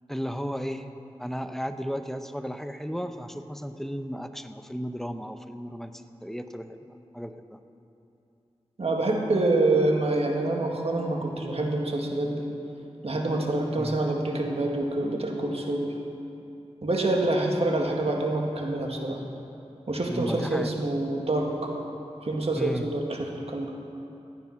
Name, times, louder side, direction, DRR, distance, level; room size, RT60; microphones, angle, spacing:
voice 1, 0.1-0.9 1.2-5.9 6.2-6.8 7.1-7.6 13.8-14.0 20.1-20.7 22.6-22.9, equal, 5° left, 8 dB, 0.8 m, -34 dB
voice 2, 8.8-12.5 13.0-16.0 16.8-19.2 19.9-21.7 22.2-23.8, right 2 dB, 60° right, 1 dB, 1.9 m, -26 dB
15.5 x 9.7 x 5.9 m, 2.8 s
cardioid pair, 40°, 12 cm